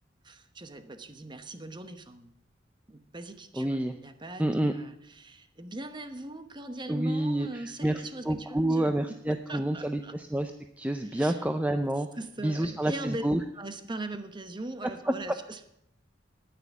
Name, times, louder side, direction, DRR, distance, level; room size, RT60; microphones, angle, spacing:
voice 1, 0.2-2.3 2.9-8.9 9.5-10.1 11.0-11.4 12.2-13.2 13.5-15.7, right 2 dB, 25° right, 9 dB, 1.0 m, -40 dB
voice 2, 3.6-4.0 4.4-4.7 6.9-10.5 10.8-12.1 12.4-13.4, right 1 dB, 10° right, 7 dB, 0.5 m, -28 dB
9.7 x 9.5 x 8.1 m, 0.78 s
head